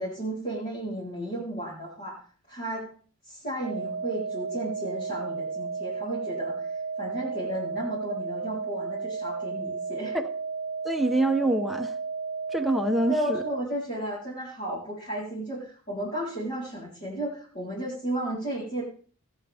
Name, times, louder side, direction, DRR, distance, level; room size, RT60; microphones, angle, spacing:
voice 1, 0.0-3.0 3.2-6.7 7.0-10.2 13.1-18.8, right 1 dB, 40° left, -9 dB, 4.2 m, -33 dB
sound 1, 3.6-13.6, right 4 dB, 65° right, 0.5 m, -33 dB
voice 2, 10.8-11.9 12.5-13.4, right 1 dB, ahead, 4 dB, 1.0 m, -25 dB
18.5 x 9.0 x 3.6 m, 0.43 s
head